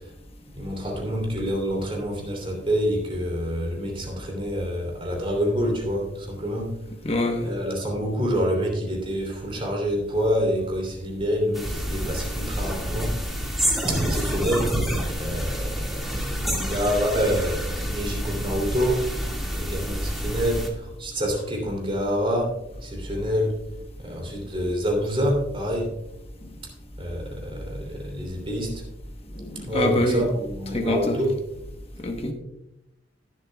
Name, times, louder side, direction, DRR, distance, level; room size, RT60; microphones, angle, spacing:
voice 1, 0.6-6.7 7.4-13.1 13.9-14.7 15.2-19.0 19.5-23.6 24.0-26.0 27.0-28.8 29.7-31.4, equal, 30° right, 0 dB, 3.0 m, -27 dB
voice 2, 7.0-7.5 12.0-12.1 29.4-30.2 30.7-31.2 32.0-32.3, left 1 dB, 30° left, 4 dB, 1.0 m, -25 dB
sound 1, 11.5-20.7, equal, ahead, 2.0 m, -28 dB
20.0 x 7.5 x 2.3 m, 0.88 s
head